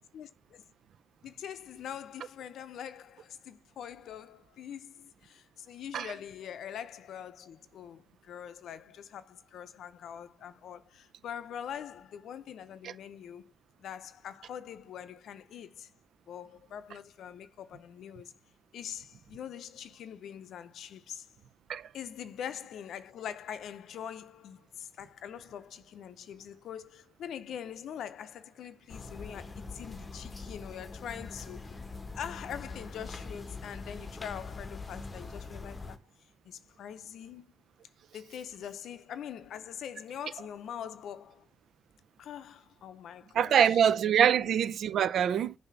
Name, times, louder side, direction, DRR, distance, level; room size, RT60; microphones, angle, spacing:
voice 1, 0.1-0.6 1.2-13.5 13.8-15.9 16.3-18.3 18.7-21.3 21.9-31.8 32.1-36.0 36.4-37.5 38.1-41.5 42.2-43.8 44.2-44.6, left 9 dB, 70° left, 0.6 m, -43 dB
sound 1, 28.9-36.0, left 3 dB, 20° left, 0.9 m, -43 dB
voice 2, 43.4-45.5, right 9 dB, 65° right, 0.4 m, -24 dB
6.7 x 2.7 x 5.8 m
cardioid pair, 90°, 0 cm